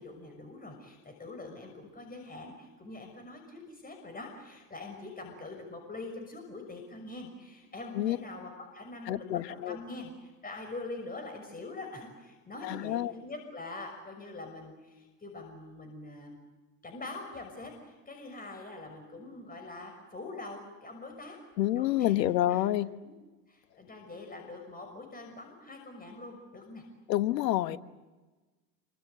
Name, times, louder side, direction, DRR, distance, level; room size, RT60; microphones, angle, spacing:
voice 1, 0.0-16.4 16.8-21.4 21.8-22.7 23.0-23.1 23.5-26.8, left 2 dB, 15° left, 4 dB, 6.2 m, -44 dB
voice 2, 9.1-9.8 12.6-13.1 21.6-22.9 27.1-27.8, left 14 dB, 75° left, 13 dB, 1.4 m, -28 dB
28.5 x 24.5 x 8.1 m, 1.2 s
hypercardioid pair, 80°, 50 cm